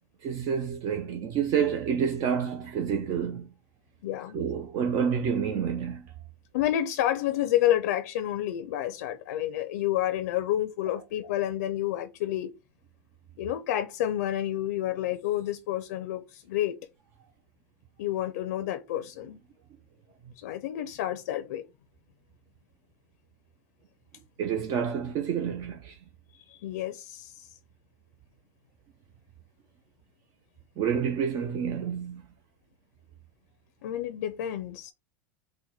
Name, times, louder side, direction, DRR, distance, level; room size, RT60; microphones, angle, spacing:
voice 1, 0.2-3.5 4.3-6.0 24.4-26.0 30.8-32.2, right 7 dB, 45° right, 0.6 m, -28 dB
voice 2, 4.0-4.4 6.5-12.5 13.4-16.8 18.0-19.4 20.4-21.6 26.5-27.5 33.8-34.9, left 12 dB, 80° left, 0.5 m, -29 dB
4.0 x 2.2 x 4.5 m
supercardioid pair, 130°, 9 cm